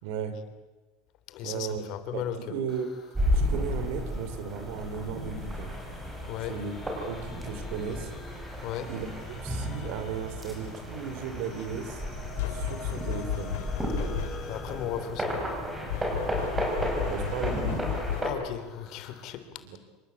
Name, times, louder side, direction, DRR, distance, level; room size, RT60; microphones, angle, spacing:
voice 1, 0.0-0.3 1.4-1.8 2.1-2.2 2.5-2.9 3.3-5.7 6.5-6.7 7.1-8.1 8.8-12.0 12.5-13.6 17.1-18.0 19.6-19.8, right 7 dB, 70° right, 10 dB, 4.0 m, -35 dB
voice 2, 1.3-2.4 6.3-6.6 8.6-8.9 14.4-15.5 18.2-19.6, left 11 dB, 55° left, 11 dB, 3.3 m, -36 dB
sound 1, 2.7-19.2, left 4 dB, 30° left, 6.5 m, -49 dB
sound 2, 3.2-18.3, equal, 10° right, 6.3 m, -33 dB
sound 3, 12.4-14.6 15.9-18.6, left 10 dB, 85° left, 3.1 m, -33 dB
27.0 x 25.0 x 8.5 m, 1.2 s
supercardioid pair, 140°, 0 cm